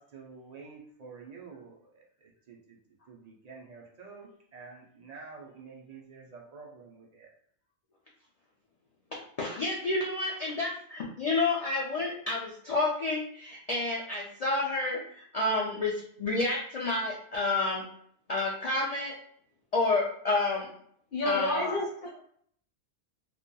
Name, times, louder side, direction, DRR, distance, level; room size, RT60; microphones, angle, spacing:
voice 1, 0.0-2.8 3.1-7.3, right 4 dB, 55° right, -2 dB, 0.4 m, -49 dB
voice 2, 9.4-15.9 16.2-17.8 18.3-19.1 19.7-20.7 21.3-21.8, left 2 dB, 70° left, -4 dB, 0.3 m, -29 dB
voice 3, 21.1-22.1, left 2 dB, 50° left, -3 dB, 1.0 m, -30 dB
2.6 x 2.2 x 2.2 m, 0.65 s
omnidirectional pair, 1.2 m